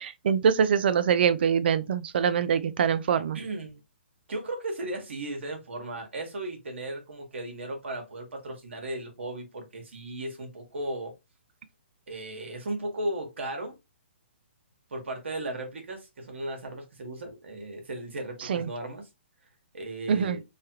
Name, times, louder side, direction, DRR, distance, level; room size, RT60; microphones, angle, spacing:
voice 1, 0.0-3.4 18.5-18.7 20.1-20.4, right 7 dB, 60° right, 0.4 m, -24 dB
voice 2, 3.3-3.8 4.3-11.1 12.1-13.8 14.9-19.1 19.7-20.4, right 1 dB, 80° right, 1.2 m, -36 dB
3.1 x 2.3 x 2.8 m
hypercardioid pair, 150°, 6 cm